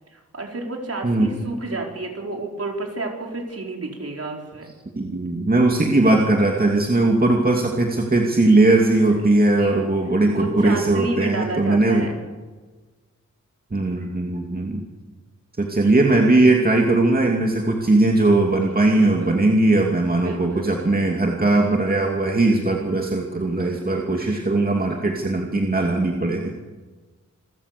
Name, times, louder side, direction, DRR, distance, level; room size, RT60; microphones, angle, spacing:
voice 1, 0.1-4.7 9.1-9.9 10.3-12.2 18.9-19.4 20.2-20.7 23.6-24.4, right 2 dB, 55° right, 1 dB, 4.9 m, -31 dB
voice 2, 4.9-12.1 13.7-14.8 15.6-26.5, right 2 dB, 30° right, 0 dB, 2.7 m, -19 dB
28.0 x 14.5 x 7.0 m, 1.3 s
wide cardioid pair, 85°, 30 cm